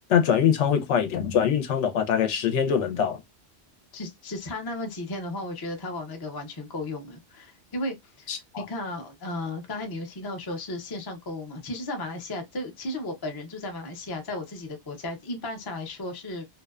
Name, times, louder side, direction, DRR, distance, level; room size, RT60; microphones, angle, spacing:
voice 1, 0.1-3.2 8.3-8.6, left 8 dB, 80° left, 0.9 m, -23 dB
voice 2, 3.9-16.5, left 2 dB, 30° left, 0.4 m, -35 dB
2.6 x 2.1 x 2.3 m
omnidirectional pair, 1.2 m